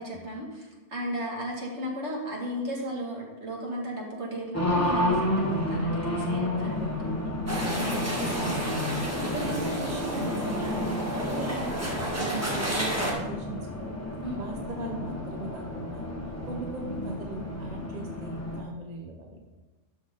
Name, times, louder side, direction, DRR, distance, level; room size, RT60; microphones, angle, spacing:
voice 1, 0.0-6.9 7.7-8.0 9.2-9.4 14.2-14.4, equal, 60° right, -2 dB, 2.3 m, -35 dB
Race car auto racing, 4.5-18.6, left 1 dB, 10° left, 1.3 m, -31 dB
voice 2, 6.6-7.2 7.7-10.8 11.2-11.8 12.1-14.0 14.3-16.1 16.4-19.5, right 2 dB, 35° right, 1 dB, 1.0 m, -39 dB
sound 1, 7.5-13.1, right 1 dB, 10° right, 1.5 m, -31 dB
12.5 x 6.2 x 3.7 m, 1.2 s
omnidirectional pair, 1.3 m